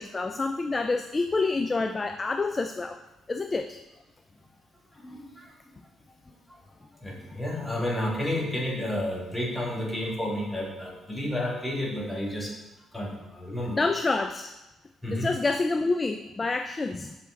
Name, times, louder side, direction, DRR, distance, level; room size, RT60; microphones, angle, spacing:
voice 1, 0.0-3.0 3.3-3.8 13.7-14.5 15.1-17.2, left 3 dB, 30° left, 7 dB, 0.4 m, -28 dB
voice 2, 5.0-5.5 7.0-12.5 12.9-13.8 15.0-15.3, left 1 dB, 10° left, -3 dB, 1.9 m, -31 dB
7.4 x 4.2 x 3.8 m, 1.0 s
supercardioid pair, 75°, 0 cm